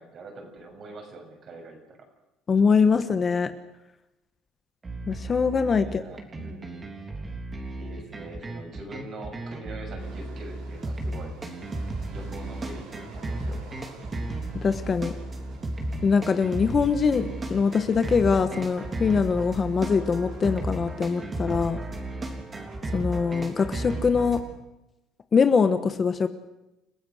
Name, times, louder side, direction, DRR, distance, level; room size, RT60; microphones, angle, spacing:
voice 1, 0.0-2.0 5.8-6.9 7.8-11.3 12.1-13.7, right 2 dB, 40° right, 3 dB, 6.9 m, -43 dB
voice 2, 2.5-3.5 5.1-6.0 14.6-15.1 16.0-21.8 22.9-24.4 25.3-26.3, left 5 dB, 30° left, 10 dB, 1.3 m, -23 dB
sound 1, 4.8-24.4, right 2 dB, 20° right, 3.6 m, -34 dB
sound 2, 10.0-21.0, right 4 dB, 85° right, 7.1 m, -50 dB
29.5 x 15.5 x 6.5 m, 0.96 s
cardioid pair, 135°, 0 cm